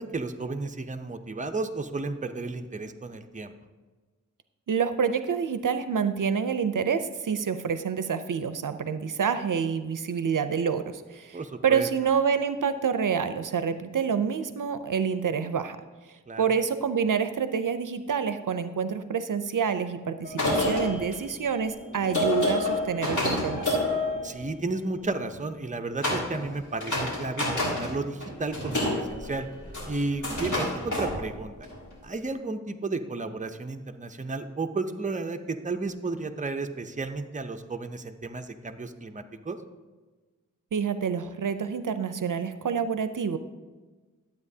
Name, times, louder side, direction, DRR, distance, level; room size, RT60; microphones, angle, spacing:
voice 1, 0.0-3.5 11.3-11.9 16.3-16.5 24.2-29.5 29.9-31.5 32.0-39.6, right 3 dB, 25° right, 7 dB, 0.6 m, -33 dB
voice 2, 4.7-15.8 16.4-23.8 40.7-43.4, right 6 dB, 75° right, 11 dB, 0.5 m, -27 dB
sound 1, 20.2-24.9 26.0-26.5 26.8-28.0 28.2-31.8, left 1 dB, 65° left, 2.5 m, -28 dB
12.0 x 8.2 x 2.7 m, 1.3 s
wide cardioid pair, 45°, 32 cm